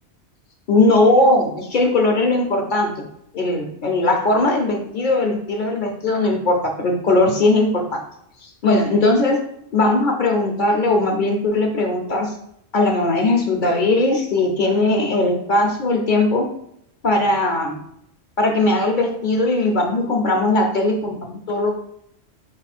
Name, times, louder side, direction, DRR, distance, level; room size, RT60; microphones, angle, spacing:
voice 1, 0.7-2.9 3.3-8.0 8.4-9.4 9.7-12.3 12.7-16.5 17.0-17.8 18.4-21.8, left 2 dB, 55° left, 2 dB, 0.7 m, -19 dB
4.8 x 2.3 x 4.1 m, 0.73 s
omnidirectional pair, 1.2 m